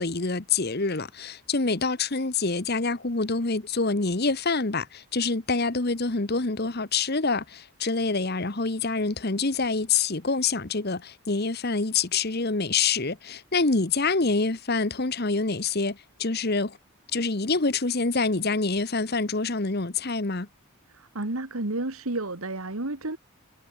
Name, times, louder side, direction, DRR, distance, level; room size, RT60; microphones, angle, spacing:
voice 1, 0.0-16.8 17.1-20.5, left 4 dB, 45° left, 1.2 m, -26 dB
voice 2, 20.9-23.2, right 2 dB, 75° right, 2.0 m, -31 dB
head